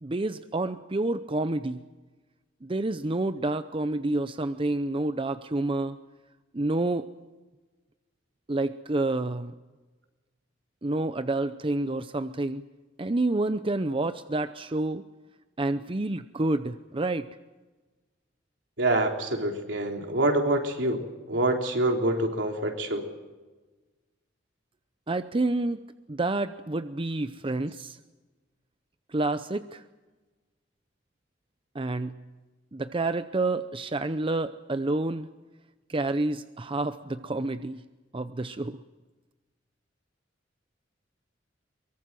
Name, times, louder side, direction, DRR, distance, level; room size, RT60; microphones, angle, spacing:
voice 1, 0.0-1.8 2.6-6.0 6.5-7.1 8.5-9.5 10.8-12.6 13.0-15.0 15.6-17.3 25.1-25.8 26.1-28.0 29.1-29.8 31.7-32.2 32.7-35.3 35.9-37.8 38.1-38.8, right 2 dB, 30° right, 11 dB, 0.7 m, -28 dB
voice 2, 18.8-23.1, right 1 dB, 70° right, 3 dB, 3.7 m, -26 dB
23.5 x 23.0 x 7.7 m, 1.2 s
head